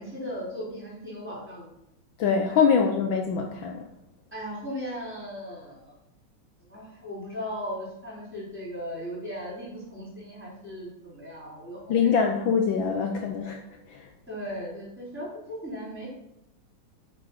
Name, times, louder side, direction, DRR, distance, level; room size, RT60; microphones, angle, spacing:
voice 1, 0.0-1.7 2.5-2.9 4.3-5.9 6.7-12.2 14.3-16.1, equal, 5° right, -6 dB, 4.1 m, -37 dB
voice 2, 2.2-3.9 11.9-13.6 13.9-14.1, left 6 dB, 70° left, 3 dB, 1.5 m, -24 dB
8.9 x 6.3 x 5.8 m, 0.85 s
omnidirectional pair, 2.4 m